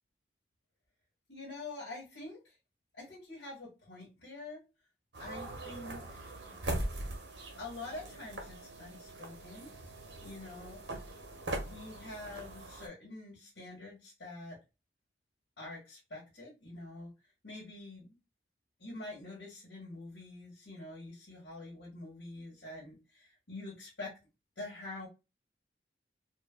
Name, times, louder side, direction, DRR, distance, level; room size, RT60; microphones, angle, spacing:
voice 1, 1.3-2.6 2.9-4.6 5.2-6.4 7.6-9.8 10.2-10.8 11.6-14.6 15.6-17.1 17.4-18.2 18.8-24.1 24.6-25.1, left 2 dB, 75° left, -6 dB, 1.6 m, -46 dB
sound 1, 5.1-12.9, right 1 dB, 75° right, 0.9 m, -41 dB
4.4 x 2.1 x 2.2 m, 0.27 s
head